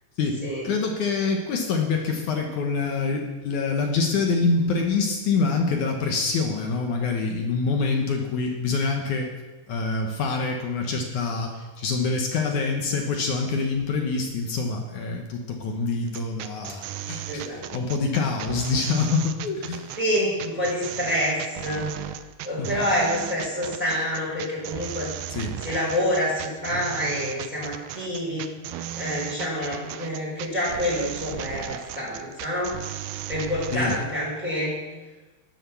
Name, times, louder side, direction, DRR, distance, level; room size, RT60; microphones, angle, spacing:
voice 1, 0.6-9.3 9.7-19.8 22.6-22.8 25.3-25.6 33.7-33.9, left 4 dB, 65° left, 2 dB, 2.0 m, -26 dB
sound 1, 16.1-34.1, right 11 dB, 80° right, 2.1 m, -35 dB
voice 2, 17.3-17.7 20.0-21.9 22.4-28.5 29.0-32.8 33.3-34.8, equal, 10° right, -6 dB, 4.3 m, -27 dB
11.5 x 11.0 x 7.0 m, 1.2 s
omnidirectional pair, 4.9 m